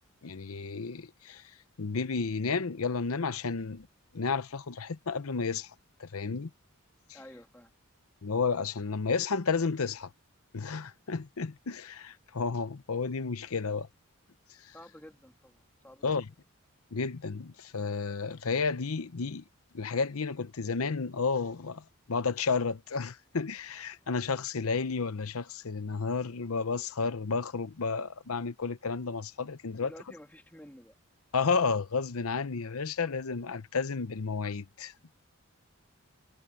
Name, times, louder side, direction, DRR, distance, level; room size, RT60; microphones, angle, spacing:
voice 1, 0.2-1.4 1.8-3.9 4.1-5.7 6.0-6.5 8.2-10.1 10.5-13.9 14.6-14.7 16.0-16.3 16.9-19.4 19.7-29.9 31.3-34.9, left 4 dB, 80° left, 0.8 m, -32 dB
voice 2, 7.1-7.7 14.7-16.2 29.7-31.0, left 1 dB, 10° left, 2.7 m, -51 dB
head